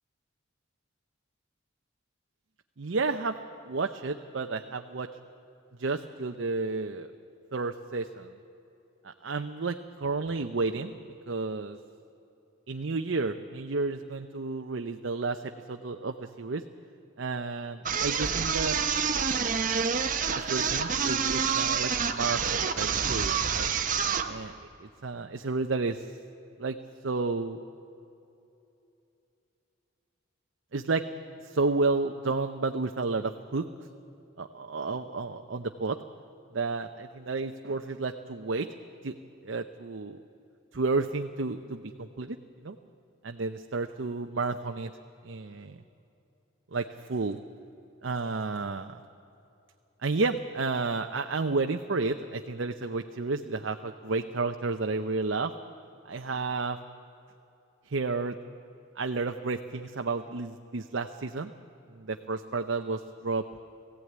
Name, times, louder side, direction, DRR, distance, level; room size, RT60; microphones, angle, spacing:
voice 1, 2.8-3.3 3.6-5.1 5.8-7.1 7.5-8.3 9.0-11.0 11.3-11.8 12.7-16.6 17.2-18.8 20.3-23.7 24.3-24.5 24.8-26.1 26.6-26.8 27.0-27.6 30.7-31.0 31.4-33.6 34.4-36.0 36.5-38.7 39.0-39.2 39.4-40.2 40.7-42.4 42.6-42.8 43.2-44.9 45.2-45.8 46.7-47.4 48.0-48.9 50.0-55.5 56.1-56.8 57.9-58.4 59.0-61.5 61.9-63.4, right 3 dB, 65° right, 5 dB, 0.7 m, -31 dB
sound 1, 17.9-24.3, right 6 dB, 40° right, 1.0 m, -28 dB
19.0 x 15.5 x 9.5 m, 2.8 s
head